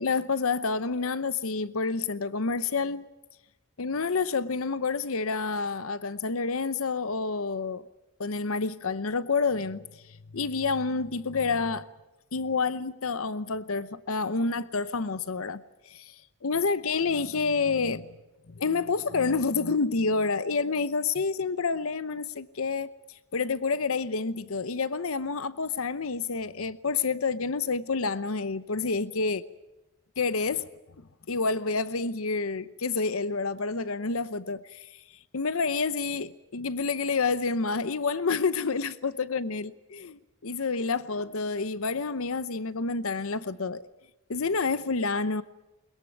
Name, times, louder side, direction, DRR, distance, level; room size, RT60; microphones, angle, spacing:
voice 1, 0.0-3.1 3.8-7.9 8.2-9.8 10.1-11.9 12.3-16.1 16.4-18.1 18.5-22.9 23.3-29.4 30.2-30.6 31.3-34.9 35.3-43.9 44.3-45.4, left 4 dB, 75° left, 0.8 m, -28 dB
22.0 x 21.5 x 9.4 m
head